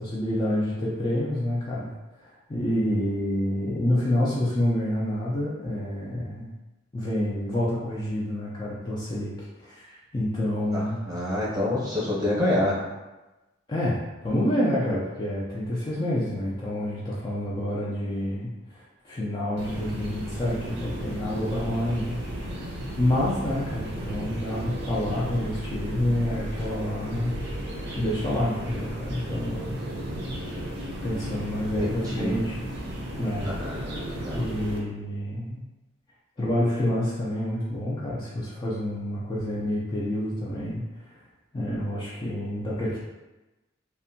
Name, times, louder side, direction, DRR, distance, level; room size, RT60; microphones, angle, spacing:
voice 1, 0.0-1.9 2.2-6.5 6.9-11.0 13.7-22.7 23.0-27.4 28.0-29.8 31.0-32.7 33.2-33.9 34.3-35.6 36.4-41.2 41.5-43.0, left 1 dB, 25° left, -7 dB, 0.4 m, -28 dB
voice 2, 10.7-12.8 31.8-32.4 33.4-34.4, left 1 dB, 20° right, -8 dB, 0.8 m, -27 dB
sound 1, 19.6-34.8, equal, 55° right, 0.5 m, -34 dB
2.6 x 2.1 x 2.6 m, 1.1 s
head